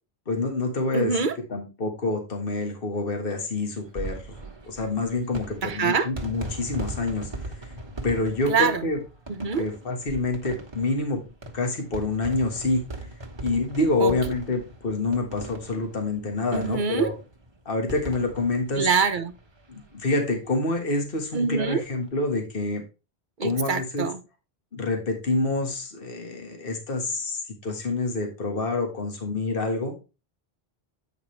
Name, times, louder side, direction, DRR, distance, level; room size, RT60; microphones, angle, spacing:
voice 1, 0.3-1.2 1.5-4.3 4.7-7.3 8.0-9.0 9.6-11.2 11.5-12.8 13.4-17.1 17.6-18.9 19.7-22.8 23.4-24.1 24.7-29.9, left 2 dB, 60° left, 1.7 m, -27 dB
voice 2, 0.9-1.3 5.6-6.1 8.5-8.8 9.3-9.6 14.0-14.1 16.5-17.1 18.8-19.3 21.3-21.8 23.4-24.2, right 5 dB, 50° right, 0.9 m, -24 dB
sound 1, 3.8-19.8 20.2-20.3 20.4-20.5 21.8-22.1, right 2 dB, 25° right, 1.2 m, -39 dB
8.5 x 5.0 x 3.1 m
omnidirectional pair, 1.1 m